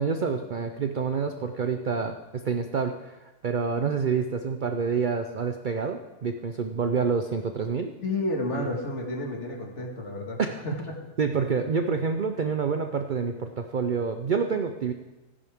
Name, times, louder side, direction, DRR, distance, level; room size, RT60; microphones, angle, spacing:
voice 1, 0.0-3.2 3.4-7.9 8.6-8.7 10.4-10.6 11.2-14.9, right 5 dB, 65° right, 6 dB, 0.5 m, -27 dB
voice 2, 8.0-10.4 10.6-11.0, left 1 dB, 50° left, 1 dB, 2.1 m, -31 dB
15.0 x 10.5 x 3.6 m, 1.1 s
omnidirectional pair, 1.6 m